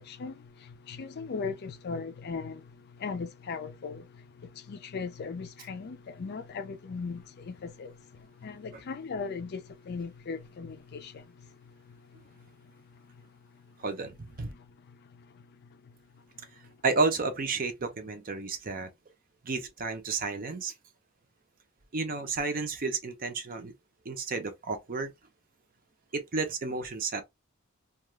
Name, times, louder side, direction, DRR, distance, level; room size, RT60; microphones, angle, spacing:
voice 1, 0.0-2.6 3.0-4.1 4.4-7.9 8.4-11.2, left 4 dB, 50° left, 0.4 m, -38 dB
voice 2, 13.8-14.5 16.8-18.9 19.4-20.7 21.9-23.7 24.1-25.1 26.1-27.2, right 4 dB, 40° right, 0.6 m, -31 dB
2.4 x 2.3 x 3.0 m
head